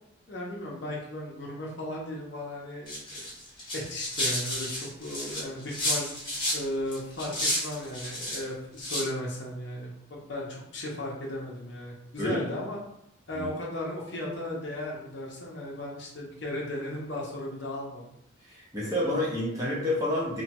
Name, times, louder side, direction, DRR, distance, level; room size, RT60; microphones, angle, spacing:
voice 1, 0.3-3.3 3.7-6.1 6.5-12.8 13.3-18.0, left 1 dB, 55° left, -2 dB, 0.7 m, -36 dB
sound 1, 2.9-6.6 6.9-8.4 8.8-9.1, left 1 dB, 25° left, 1.0 m, -31 dB
voice 2, 18.5-20.4, left 1 dB, 15° right, -6 dB, 0.8 m, -29 dB
3.1 x 2.2 x 2.9 m, 0.76 s
head